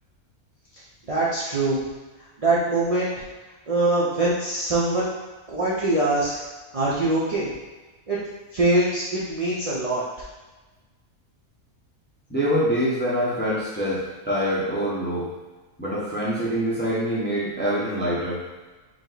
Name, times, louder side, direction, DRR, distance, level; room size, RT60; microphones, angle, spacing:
voice 1, 1.1-1.8 2.4-3.1 3.7-5.1 5.5-6.3 6.7-7.5 8.1-8.2 8.5-10.0, right 2 dB, 40° right, -7 dB, 0.5 m, -23 dB
voice 2, 12.3-15.3 15.8-18.4, equal, 10° left, -7 dB, 0.7 m, -25 dB
5.0 x 2.0 x 3.9 m, 1.2 s
omnidirectional pair, 1.5 m